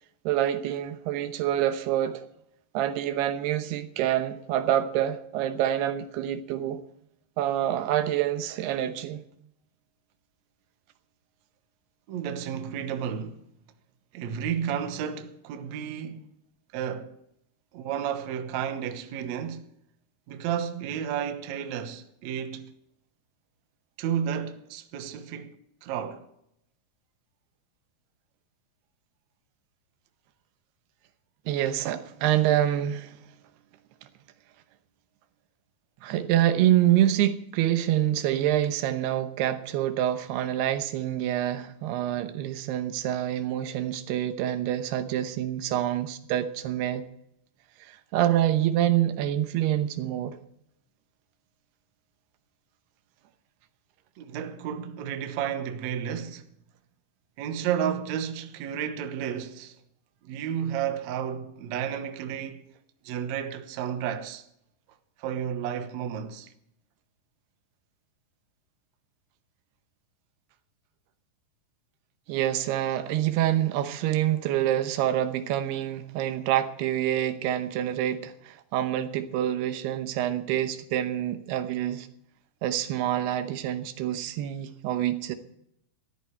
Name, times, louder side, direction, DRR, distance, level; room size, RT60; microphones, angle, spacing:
voice 1, 0.3-2.2 2.7-6.8 7.4-9.2 31.5-33.2 36.0-47.0 47.8-50.4 72.3-82.1 82.6-85.4, right 12 dB, 85° right, 3.0 m, -26 dB
voice 2, 12.1-13.4 14.1-16.2 16.7-17.1 17.7-19.7 20.3-22.7 24.0-26.3 54.2-56.5 57.4-59.8 60.2-62.7 63.0-64.5 65.2-66.5, right 8 dB, 65° right, 1.9 m, -32 dB
14.5 x 13.0 x 4.5 m
omnidirectional pair, 4.6 m